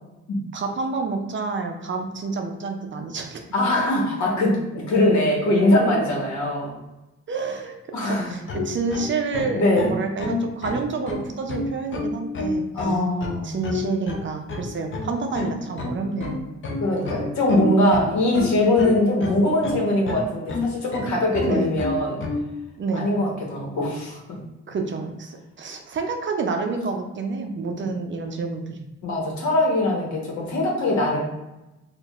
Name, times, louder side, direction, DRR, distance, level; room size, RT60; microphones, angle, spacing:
voice 1, 0.5-3.4 7.3-7.7 8.1-13.0 13.4-16.5 21.5-21.7 22.8-23.1 24.7-28.8, right 4 dB, 40° right, 4 dB, 0.5 m, -28 dB
voice 2, 3.5-6.7 7.9-8.4 9.5-9.9 12.7-13.5 16.8-22.2 22.9-24.2 27.8-27.9 29.0-31.2, left 1 dB, 70° left, -2 dB, 1.2 m, -22 dB
sound 1, 8.2-22.5, left 3 dB, 40° left, 0.6 m, -29 dB
4.4 x 2.5 x 2.4 m, 1.0 s
cardioid pair, 90°, 30 cm